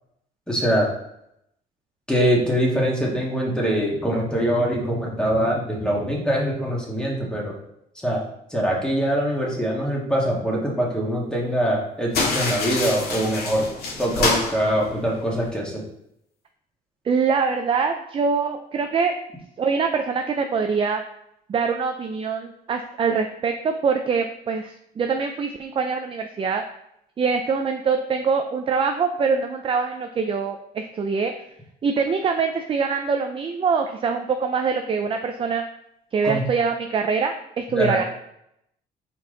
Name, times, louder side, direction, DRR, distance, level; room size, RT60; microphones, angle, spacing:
voice 1, 0.5-0.9 2.1-7.5 8.0-8.2 8.5-13.7 14.0-15.8 36.2-36.4 37.8-38.1, equal, 5° left, -3 dB, 1.9 m, -23 dB
sound 1, 12.1-15.5, left 3 dB, 70° left, 1.8 m, -27 dB
voice 2, 17.0-19.1 19.6-21.0 21.5-26.6 27.2-31.3 31.8-35.6 36.1-38.0, right 5 dB, 30° right, 5 dB, 0.5 m, -24 dB
5.2 x 4.6 x 3.9 m, 0.78 s
cardioid pair, 110°, 17 cm